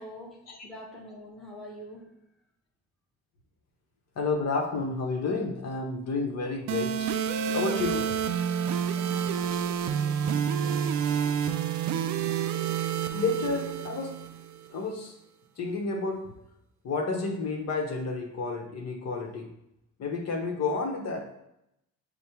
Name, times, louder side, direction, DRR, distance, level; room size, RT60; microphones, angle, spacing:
voice 1, 0.0-2.1 8.9-10.9, equal, ahead, -3 dB, 1.0 m, -45 dB
voice 2, 4.2-7.1 7.5-8.1 9.5-9.6 13.1-14.2 14.7-15.1 15.6-16.2 16.8-19.5 20.0-21.3, left 3 dB, 60° left, 1 dB, 0.9 m, -30 dB
sound 1, 6.7-14.7, right 8 dB, 70° right, 0.4 m, -29 dB
5.2 x 2.1 x 4.4 m, 0.81 s
cardioid pair, 90°, 30 cm